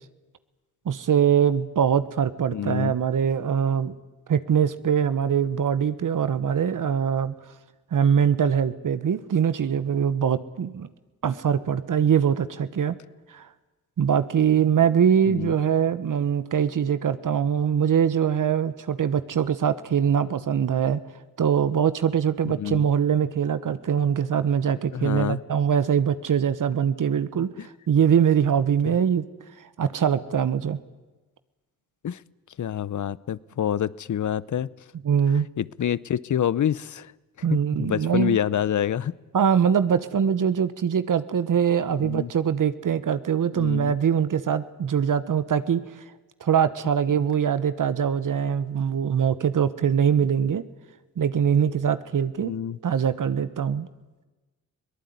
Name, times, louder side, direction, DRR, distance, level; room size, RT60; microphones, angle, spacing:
voice 1, 0.8-3.9 4.3-7.3 7.9-10.9 11.2-12.9 13.3-13.5 14.0-21.0 21.4-27.5 27.9-29.2 29.8-30.8 35.0-35.5 37.4-38.4 39.3-45.8 46.4-50.6 51.2-52.5 52.8-53.9, right 8 dB, 65° right, 13 dB, 1.2 m, -23 dB
voice 2, 2.5-2.9 15.3-15.5 22.4-22.9 24.9-25.4 27.6-27.7 28.8-29.0 32.0-32.2 32.6-34.7 35.6-37.1 37.5-39.1 42.0-42.3 43.5-43.9 52.4-52.8, left 9 dB, 60° left, 21 dB, 0.8 m, -27 dB
22.5 x 18.5 x 9.5 m, 1.2 s
cardioid pair, 65°, 34 cm